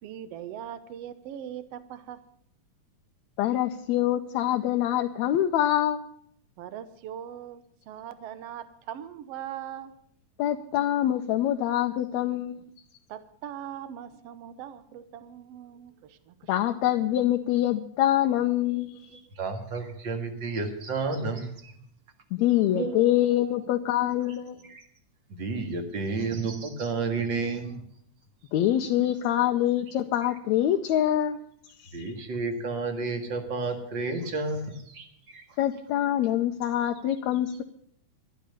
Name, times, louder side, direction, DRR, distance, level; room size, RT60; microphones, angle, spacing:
voice 1, 0.0-2.2 6.6-10.0 13.1-16.5, right 10 dB, 65° right, 13 dB, 1.7 m, -40 dB
voice 2, 3.4-6.0 10.4-12.6 16.5-19.1 22.3-24.6 28.5-31.4 31.8-32.0 35.6-37.6, left 12 dB, 75° left, 4 dB, 1.9 m, -25 dB
voice 3, 19.1-21.8 22.7-23.0 23.4-23.6 24.7-24.8 25.3-27.9 29.0-29.1 31.9-35.4, right 3 dB, 40° right, 5 dB, 2.2 m, -31 dB
12.5 x 12.0 x 6.6 m, 0.69 s
omnidirectional pair, 3.5 m